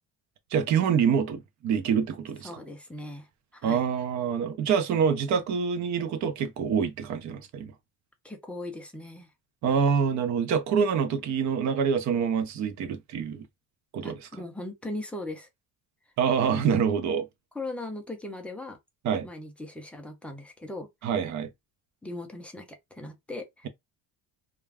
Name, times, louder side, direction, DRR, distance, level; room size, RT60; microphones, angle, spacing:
voice 1, 0.5-2.6 3.6-7.7 9.6-13.5 13.9-14.2 16.2-17.3 19.0-19.3 21.0-21.5, right 7 dB, 45° right, 0.6 m, -26 dB
voice 2, 2.4-3.3 3.5-3.8 8.2-9.3 14.0-15.5 17.5-18.8 19.2-20.9 22.0-23.7, left 2 dB, 5° left, 0.3 m, -39 dB
2.4 x 2.2 x 3.3 m
cardioid pair, 155°, 40 cm